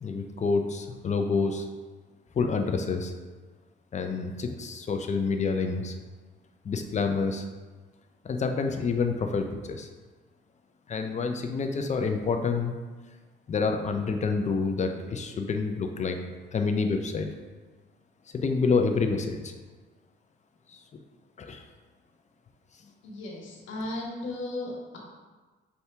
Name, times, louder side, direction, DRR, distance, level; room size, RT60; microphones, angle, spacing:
voice 1, 0.0-1.7 2.3-3.1 3.9-5.9 6.6-7.4 8.2-9.9 10.9-12.7 13.5-16.2 16.5-17.3 18.3-19.5 20.7-20.8 21.4-21.6, left 4 dB, 35° left, 5 dB, 0.5 m, -28 dB
voice 2, 23.0-25.0, left 2 dB, 75° left, -2 dB, 1.2 m, -35 dB
5.7 x 2.7 x 3.4 m, 1.3 s
cardioid pair, 90°, 20 cm